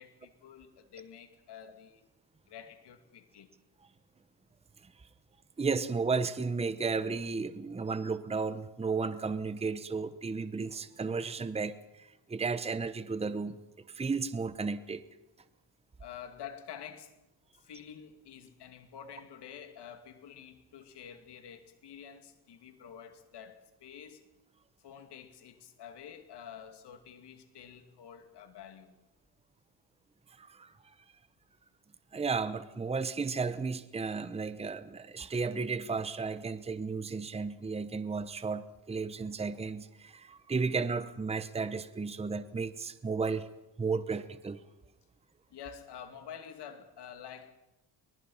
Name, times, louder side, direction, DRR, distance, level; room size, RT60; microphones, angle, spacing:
voice 1, 0.0-2.1 2.5-3.5 16.0-17.2 17.6-24.2 24.8-29.0 45.5-47.5, left 8 dB, 65° left, 2.6 m, -48 dB
voice 2, 5.6-13.6 13.9-15.0 30.4-30.7 32.1-43.5 43.8-44.6, right 4 dB, 15° right, 0.9 m, -33 dB
25.0 x 19.5 x 5.7 m
cardioid pair, 125°, 44 cm